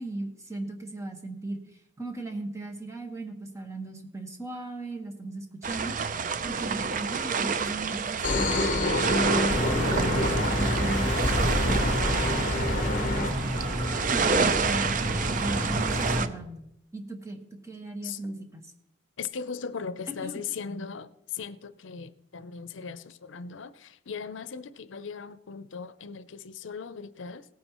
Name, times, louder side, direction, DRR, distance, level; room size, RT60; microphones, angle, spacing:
voice 1, 0.0-1.6 2.0-6.0 6.4-11.1 11.6-13.4 14.2-16.6 16.9-18.7 20.1-20.4, right 2 dB, 15° right, 1.3 m, -36 dB
sound 1, 5.6-16.3, right 5 dB, 40° right, 0.5 m, -29 dB
sound 2, 8.2-13.3, left 2 dB, 40° left, 1.0 m, -28 dB
sound 3, 9.5-16.2, equal, 80° right, 2.0 m, -30 dB
voice 2, 19.2-27.5, left 6 dB, 80° left, 0.6 m, -38 dB
17.5 x 9.5 x 3.0 m
head